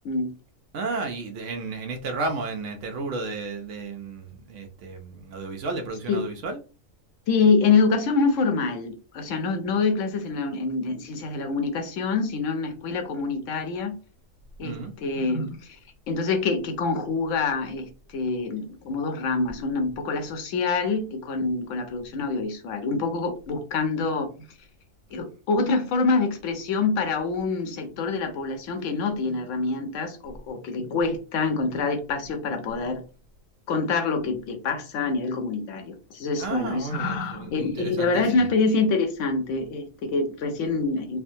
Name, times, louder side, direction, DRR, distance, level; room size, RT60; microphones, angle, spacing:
voice 1, 0.7-6.6 14.6-14.9 36.4-38.4, right 3 dB, 70° right, 0.9 m, -33 dB
voice 2, 7.3-14.0 14.6-15.6 16.1-24.3 25.1-33.0 33.7-41.2, left 4 dB, 70° left, 1.0 m, -26 dB
3.4 x 2.1 x 2.6 m
omnidirectional pair, 1.4 m